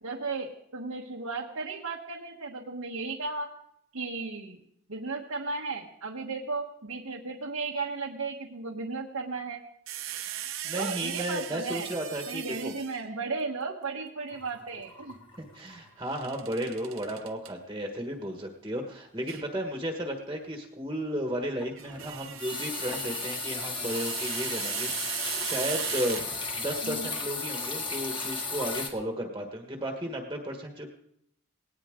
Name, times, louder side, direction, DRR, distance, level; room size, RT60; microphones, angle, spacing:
voice 1, 0.0-3.5 3.9-4.6 4.9-9.6 10.7-11.9 12.3-15.2 26.8-27.1, right 4 dB, 85° right, -1 dB, 1.3 m, -35 dB
sound 1, 9.9-13.2 16.0-17.5 19.3-19.5 21.6-26.7, right 11 dB, 65° right, 1.1 m, -38 dB
voice 2, 10.6-12.7 15.4-26.3 26.6-30.9, equal, 15° right, 2 dB, 1.4 m, -34 dB
sound 2, 14.3-15.9 16.2-16.5 16.9-17.0 21.6-28.9, left 4 dB, 25° left, 1.8 m, -35 dB
19.0 x 18.5 x 3.7 m, 0.74 s
head